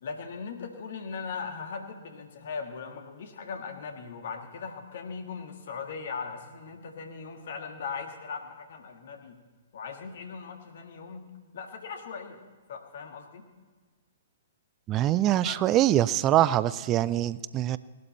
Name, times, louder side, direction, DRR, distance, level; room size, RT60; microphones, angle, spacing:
voice 1, 0.0-9.4 9.7-12.4 12.7-13.5 15.4-15.6, left 5 dB, 50° left, 5 dB, 1.8 m, -39 dB
voice 2, 14.9-17.8, right 13 dB, 25° right, 18 dB, 0.4 m, -24 dB
18.5 x 12.0 x 4.3 m, 1.5 s
figure-of-eight pair, 115°, 0 cm